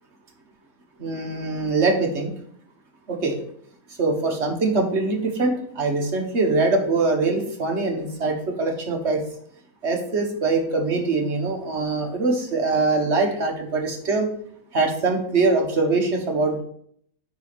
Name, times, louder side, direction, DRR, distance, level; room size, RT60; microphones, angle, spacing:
voice 1, 1.0-2.3 3.1-3.4 4.0-9.2 9.8-14.3 14.7-16.6, right 3 dB, 50° right, 2 dB, 1.6 m, -23 dB
9.3 x 4.2 x 5.1 m, 0.65 s
omnidirectional pair, 1.5 m